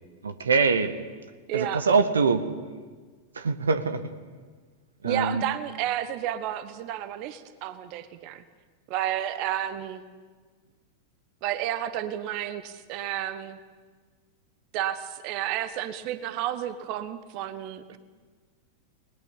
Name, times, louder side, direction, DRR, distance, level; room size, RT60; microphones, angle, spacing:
voice 1, 0.2-0.9 1.5-2.5 3.3-4.0 5.0-5.4, right 4 dB, 70° right, 10 dB, 1.5 m, -23 dB
voice 2, 1.5-1.8 5.0-8.4 8.9-10.0 11.4-13.6 14.7-18.0, right 11 dB, 45° right, 12 dB, 1.3 m, -31 dB
29.5 x 20.5 x 8.4 m, 1.5 s
figure-of-eight pair, 90°, 0 cm